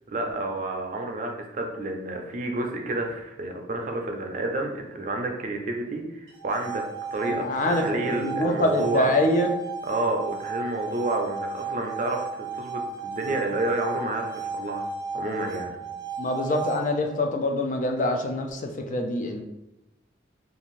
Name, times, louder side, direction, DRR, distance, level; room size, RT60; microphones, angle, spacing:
voice 1, 0.1-6.8 7.1-9.1 9.9-14.9 15.1-15.7, right 2 dB, 40° right, 2 dB, 0.4 m, -30 dB
sound 1, 6.3-17.3, right 4 dB, 90° right, 0.6 m, -34 dB
voice 2, 7.2-9.5 16.2-19.4, left 1 dB, 40° left, 3 dB, 0.3 m, -25 dB
2.6 x 2.4 x 3.0 m, 0.90 s
head